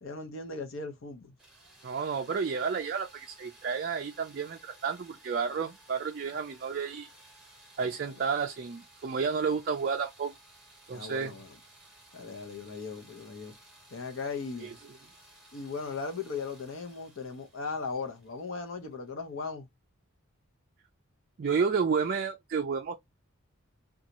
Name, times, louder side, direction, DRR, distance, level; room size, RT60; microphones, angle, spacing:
voice 1, 0.0-1.3 8.1-8.2 10.9-11.5 12.1-13.5 13.9-14.8 15.5-19.7, left 4 dB, 60° left, 0.7 m, -38 dB
sound 1, 1.4-19.1, right 1 dB, ahead, 1.0 m, -57 dB
voice 2, 1.8-7.1 7.8-10.3 10.9-11.3 14.6-14.7 21.4-23.0, right 5 dB, 45° right, 0.3 m, -31 dB
2.6 x 2.3 x 2.9 m
head